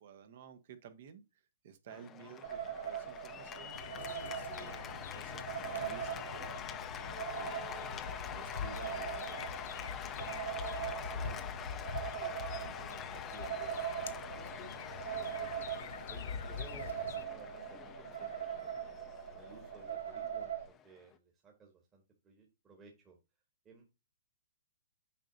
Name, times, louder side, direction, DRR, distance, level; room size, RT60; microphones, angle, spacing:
voice 1, 0.0-6.7 7.4-11.6 12.3-15.0, right 7 dB, 55° right, 1.3 m, -55 dB
Cheering / Applause, 1.9-21.2, left 9 dB, 20° left, 0.6 m, -46 dB
sound 1, 2.4-20.7, right 9 dB, 80° right, 1.4 m, -42 dB
sound 2, 3.7-17.2, left 6 dB, 65° left, 0.7 m, -45 dB
voice 2, 13.0-13.8 16.1-16.9 17.3-19.0 19.3-23.2 23.6-23.9, right 4 dB, 20° right, 1.6 m, -58 dB
7.3 x 5.2 x 2.7 m
hypercardioid pair, 135°, 0 cm